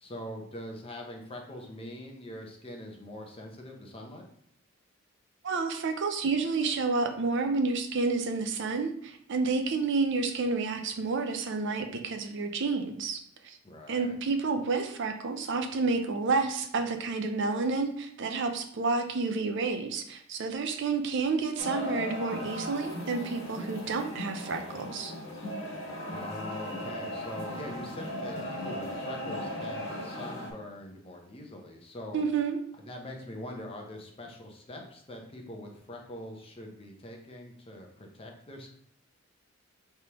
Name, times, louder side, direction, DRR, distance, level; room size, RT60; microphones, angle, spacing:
voice 1, 0.0-4.3 13.6-14.1 26.1-32.2 32.8-38.7, left 1 dB, 25° left, 1 dB, 0.7 m, -43 dB
voice 2, 5.4-13.6 13.9-25.1 32.1-32.6, right 4 dB, 60° right, 6 dB, 0.5 m, -30 dB
sound 1, 21.6-30.5, left 1 dB, 60° left, 1.4 m, -37 dB
4.8 x 3.4 x 2.9 m, 0.66 s
head